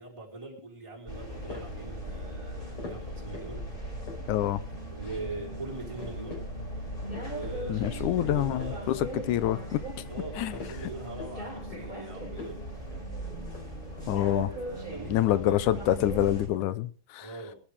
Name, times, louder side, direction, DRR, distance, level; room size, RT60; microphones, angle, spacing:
voice 1, 0.0-3.6 4.9-6.4 7.2-9.2 10.1-12.6 14.1-15.8 17.2-17.6, right 2 dB, 10° right, -2 dB, 4.4 m, -42 dB
sound 1, 1.1-16.5, right 1 dB, 15° left, 4.6 m, -38 dB
sound 2, 1.3-1.9 2.8-3.6 3.9-4.6 5.0-5.3 5.6-5.7 6.0-6.5 6.8-7.6 7.9-8.8 9.1-9.8 10.2-11.4 11.7-12.0 12.3-12.6 12.9-13.1 13.4-14.2 14.9-16.1 16.3-16.7, left 3 dB, 40° left, 5.9 m, -45 dB
voice 2, 4.3-4.6 7.7-9.8 10.4-10.5 14.1-14.5 15.1-17.3, left 13 dB, 75° left, 15 dB, 2.1 m, -26 dB
19.5 x 12.0 x 3.5 m, 0.37 s
omnidirectional pair, 3.9 m